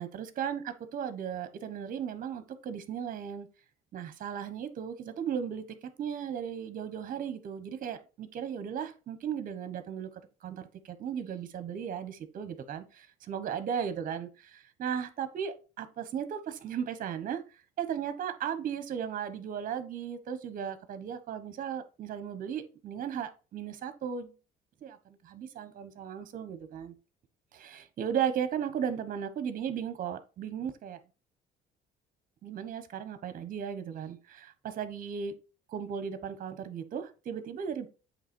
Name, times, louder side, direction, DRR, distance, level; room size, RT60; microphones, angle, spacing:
voice 1, 0.0-3.5 3.9-5.6 6.0-10.1 10.4-17.4 17.8-24.3 24.8-25.0 25.2-26.9 27.5-31.0 32.4-35.3 35.7-37.9, right 8 dB, 55° right, 1.1 m, -36 dB
8.0 x 3.2 x 4.4 m
cardioid pair, 110°, 17 cm